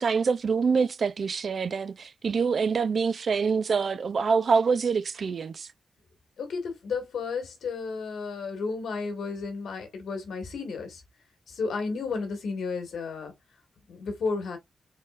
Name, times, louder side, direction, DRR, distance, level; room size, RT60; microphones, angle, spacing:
voice 1, 0.0-5.7, right 5 dB, 60° right, 0.4 m, -25 dB
voice 2, 6.4-11.0 11.5-13.3 13.9-14.6, left 4 dB, 90° left, 1.8 m, -32 dB
4.2 x 3.8 x 2.4 m
cardioid pair, 90°, 0 cm